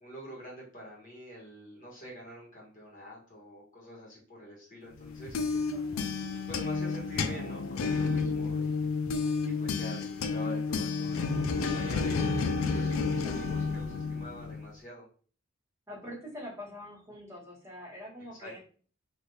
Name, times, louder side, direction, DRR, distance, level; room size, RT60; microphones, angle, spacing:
voice 1, 0.0-5.4 6.5-8.9 9.4-12.2 12.7-15.1 18.4-18.6, equal, 40° left, -5 dB, 1.4 m, -46 dB
sound 1, 5.0-14.7, left 4 dB, 80° left, 0.4 m, -31 dB
voice 2, 5.5-6.2 15.9-18.6, left 1 dB, 15° right, -6 dB, 1.3 m, -45 dB
3.2 x 2.6 x 2.7 m, 0.42 s
head